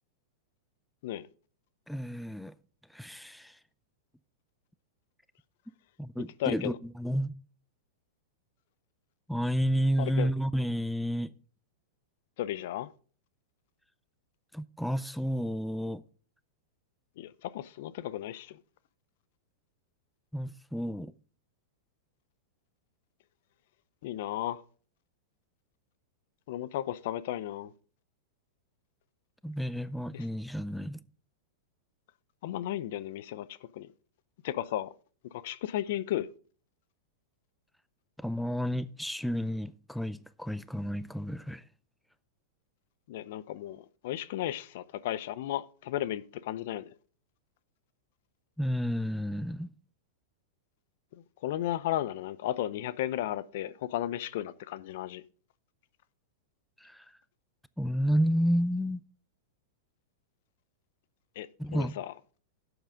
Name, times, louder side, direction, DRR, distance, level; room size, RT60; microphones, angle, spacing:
voice 1, 1.9-2.5 2.9-3.6 6.0-7.3 9.3-11.3 14.5-16.0 20.3-21.1 29.4-31.0 38.2-41.6 48.6-49.7 56.8-57.0 57.8-59.0 61.6-61.9, equal, ahead, 0.5 m, -31 dB
voice 2, 6.4-6.8 10.0-10.3 12.4-12.9 17.2-18.6 24.0-24.6 26.5-27.7 30.1-30.2 32.4-33.9 34.4-34.9 35.3-36.3 43.1-46.8 51.4-55.2 61.4-62.1, left 12 dB, 60° left, 0.6 m, -34 dB
11.5 x 8.0 x 3.6 m
hypercardioid pair, 120°, 0 cm